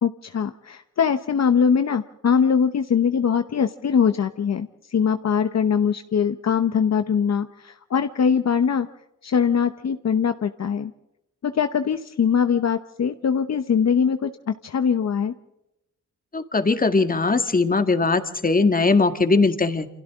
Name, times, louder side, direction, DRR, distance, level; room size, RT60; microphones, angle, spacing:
voice 1, 0.0-8.9 9.2-10.9 11.4-15.3, left 7 dB, 55° left, 9 dB, 1.0 m, -22 dB
voice 2, 16.3-19.9, left 3 dB, 25° left, 9 dB, 1.8 m, -20 dB
28.5 x 27.0 x 3.7 m, 0.89 s
cardioid pair, 100°, 31 cm